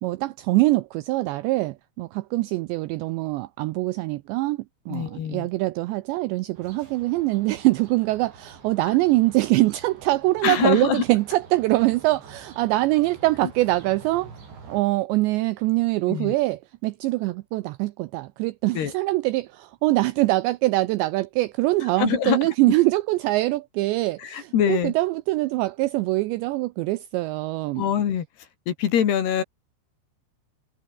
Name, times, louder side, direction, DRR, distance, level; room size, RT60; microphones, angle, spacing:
voice 1, 0.0-4.6 4.9-14.3 14.7-27.9, right 19 dB, 90° right, 2.5 m, -23 dB
voice 2, 4.9-5.5 8.8-8.9 10.4-11.0 16.1-16.3 18.7-18.9 22.0-22.4 24.2-24.9 27.8-28.3 28.7-29.4, left 9 dB, 60° left, 4.2 m, -24 dB
sound 1, 6.5-14.8, right 5 dB, 60° right, 9.3 m, -47 dB
omnidirectional pair, 5.8 m